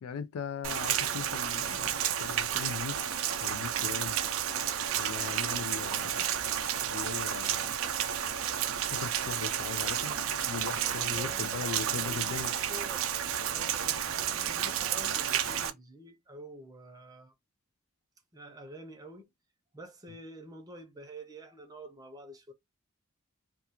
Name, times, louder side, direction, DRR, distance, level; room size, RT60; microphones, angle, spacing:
voice 1, 0.0-1.9 2.2-3.0 3.4-4.2 5.0-7.8 8.9-10.1 10.5-12.5, left 6 dB, 85° left, 0.3 m, -39 dB
Rain, 0.6-15.7, right 9 dB, 70° right, 0.4 m, -31 dB
voice 2, 10.6-13.1 13.5-17.3 18.3-19.3 19.7-22.5, right 1 dB, 15° right, 0.6 m, -48 dB
2.3 x 2.3 x 2.8 m
head